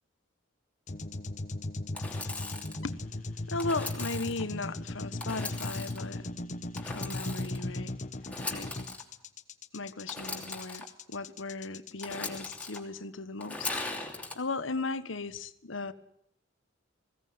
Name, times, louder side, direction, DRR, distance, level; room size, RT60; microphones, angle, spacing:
sound 1, 0.9-12.8, left 2 dB, 40° left, 1.1 m, -38 dB
Engine / Sawing, 1.9-2.8 3.6-4.4 5.2-6.0 6.8-7.6 8.2-9.0 10.1-10.8 12.0-12.8 13.4-14.4, left 2 dB, 5° left, 3.0 m, -39 dB
voice 1, 3.5-6.3 6.8-7.9 8.5-8.7 9.7-13.7 14.3-15.9, left 3 dB, 75° left, 13 dB, 1.3 m, -36 dB
20.5 x 17.0 x 9.4 m, 0.73 s
head